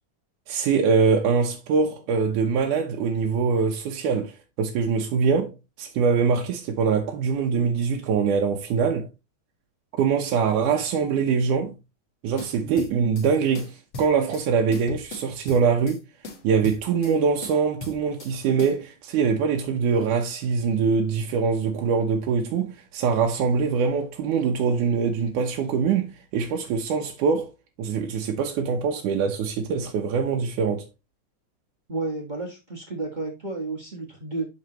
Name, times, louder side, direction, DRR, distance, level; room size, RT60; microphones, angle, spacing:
voice 1, 0.5-9.1 10.0-11.7 12.2-13.7 14.0-16.0 16.4-27.5 27.8-30.9, right 5 dB, 85° right, 2.5 m, -23 dB
sound 1, 12.4-13.3 13.5-14.5 14.7-16.0 16.2-17.1 17.4-18.3 18.6-18.8, left 3 dB, 45° left, 1.9 m, -38 dB
voice 2, 31.9-34.5, right 3 dB, 30° right, 0.8 m, -31 dB
11.0 x 4.0 x 3.0 m
omnidirectional pair, 3.5 m